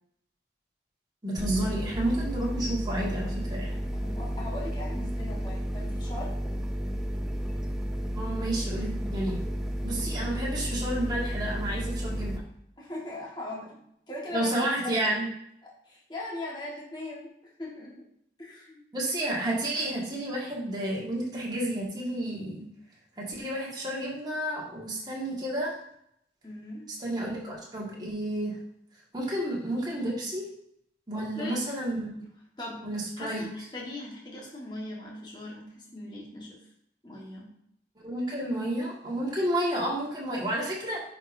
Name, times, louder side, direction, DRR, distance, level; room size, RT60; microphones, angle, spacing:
voice 1, 1.2-3.8 8.2-9.4 9.8-12.4 14.3-15.3 18.9-22.7 23.2-25.8 27.0-28.6 29.1-30.4 31.1-32.1 32.8-33.4 38.0-41.0, right 1 dB, 25° right, -4 dB, 1.7 m, -31 dB
sound 1, 1.4-12.4, equal, 5° right, 0.4 m, -32 dB
voice 2, 3.9-6.3 12.8-13.8 14.1-14.5 14.8-15.1 15.6-17.3 17.6-17.9 18.4-18.8 26.4-26.9 31.1-31.6 32.6-32.8 33.2-36.6 37.0-37.5, left 2 dB, 25° left, -4 dB, 1.5 m, -39 dB
10.0 x 4.9 x 2.7 m, 0.73 s
head